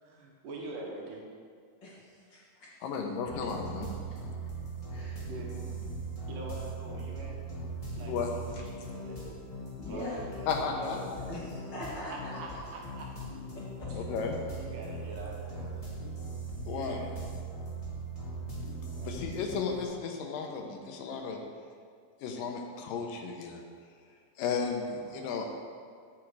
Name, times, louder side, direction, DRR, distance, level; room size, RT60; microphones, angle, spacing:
voice 1, 0.0-1.2 3.4-3.5 4.9-5.8 6.3-7.4 7.8-9.3 9.8-11.0 12.0-13.1 13.9-14.0 14.6-15.9 16.7-17.2 18.9-19.7 25.0-25.3, right 1 dB, 70° right, -1 dB, 2.6 m, -45 dB
voice 2, 1.8-2.7 4.1-4.2 4.9-5.2 9.8-10.3 11.3-12.6 13.5-13.9, left 1 dB, 50° left, -5 dB, 1.4 m, -42 dB
voice 3, 2.8-3.9 8.1-8.6 10.5-11.0 13.9-14.3 16.7-17.0 19.0-21.4 22.2-23.6 24.4-25.5, left 5 dB, 80° left, 3 dB, 2.5 m, -34 dB
sound 1, 3.3-19.8, right 2 dB, 20° left, 0.8 m, -40 dB
8.6 x 6.5 x 4.7 m, 2.1 s
omnidirectional pair, 4.0 m